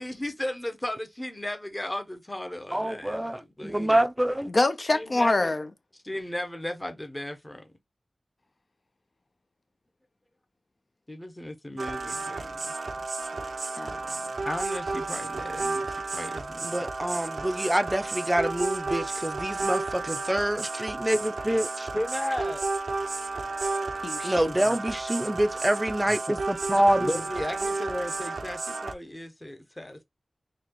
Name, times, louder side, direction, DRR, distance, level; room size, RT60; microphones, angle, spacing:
voice 1, 0.0-4.0 4.9-5.5 6.0-7.6 11.1-12.7 14.4-16.7 21.9-22.7 27.0-30.0, left 1 dB, 20° left, 0.9 m, -35 dB
voice 2, 2.7-4.5 16.6-21.9 24.2-27.2, right 1 dB, 15° right, 0.5 m, -26 dB
voice 3, 4.5-5.7 13.8-14.4 24.0-24.5, left 2 dB, 50° left, 0.5 m, -26 dB
sound 1, 11.8-28.9, right 3 dB, 90° right, 0.5 m, -32 dB
4.1 x 2.9 x 2.9 m
wide cardioid pair, 60°, 0 cm